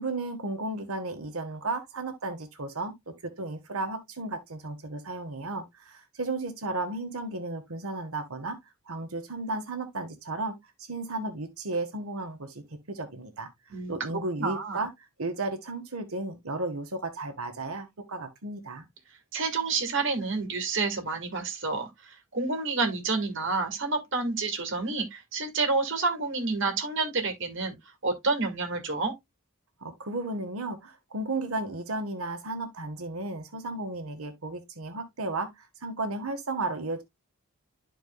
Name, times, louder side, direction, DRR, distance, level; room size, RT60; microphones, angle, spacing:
voice 1, 0.0-8.6 8.9-13.5 13.9-14.9 15.2-18.8 29.8-37.0, right 2 dB, 75° right, 1.5 m, -34 dB
voice 2, 14.4-14.8 19.3-27.7 28.0-29.1, right 3 dB, 55° right, 2.0 m, -29 dB
12.5 x 4.5 x 2.3 m
head